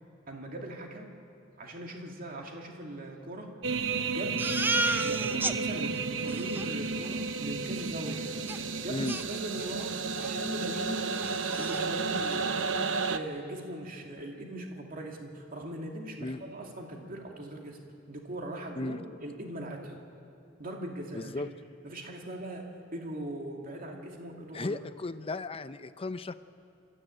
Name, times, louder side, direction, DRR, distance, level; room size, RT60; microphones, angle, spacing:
voice 1, 0.3-1.1 1.6-3.5 3.8-4.6 5.0-8.3 8.8-11.1 11.6-12.6 13.1-17.8 18.1-20.0 20.6-21.3 21.8-24.8, right 1 dB, 50° right, 1 dB, 2.4 m, -40 dB
sound 1, 3.6-13.2, right 4 dB, 70° right, 0.9 m, -32 dB
Crying sobbing, 4.4-5.6 6.0-6.1 6.3-6.7 8.5-8.6 9.1-9.8 10.2-10.4 10.7-10.8 11.1-11.8, right 2 dB, 10° right, 0.6 m, -32 dB
voice 2, 21.1-21.5 24.5-26.3, left 2 dB, 30° left, 12 dB, 0.6 m, -35 dB
28.5 x 14.0 x 8.9 m, 2.6 s
head